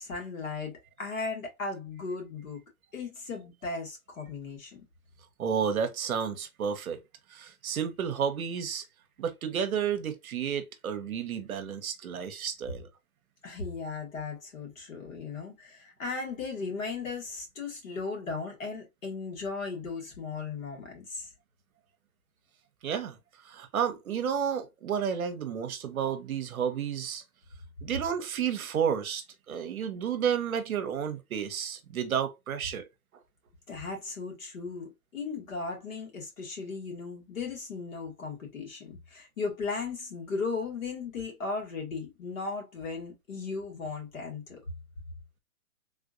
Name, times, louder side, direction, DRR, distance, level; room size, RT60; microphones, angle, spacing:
voice 1, 0.0-2.6 2.9-4.8 13.4-21.3 33.7-44.6, left 4 dB, 60° left, 1.9 m, -36 dB
voice 2, 5.4-7.0 7.3-8.9 9.2-12.9 22.8-23.2 23.4-27.2 27.8-32.8, right 8 dB, 65° right, 0.8 m, -31 dB
3.5 x 2.5 x 2.5 m
hypercardioid pair, 150°, 45 cm